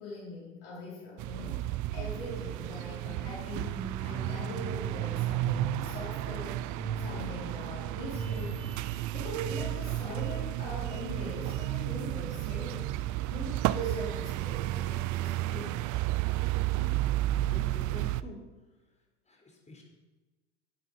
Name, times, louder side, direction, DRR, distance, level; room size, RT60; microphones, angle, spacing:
voice 1, 0.0-8.8 9.1-15.8, left 1 dB, 70° left, -7 dB, 5.0 m, -42 dB
sound 1, 1.2-18.2, right 16 dB, 50° right, 0.5 m, -32 dB
sound 2, 1.9-10.1, right 3 dB, 15° right, 1.8 m, -42 dB
Vehicle horn car horn honking, 8.2-9.0, right 3 dB, 35° right, 3.8 m, -54 dB
voice 2, 16.7-17.0 17.5-18.5 19.3-19.8, left 2 dB, 20° left, 1 dB, 4.0 m, -47 dB
12.0 x 9.6 x 5.5 m, 1.2 s
hypercardioid pair, 75°, 37 cm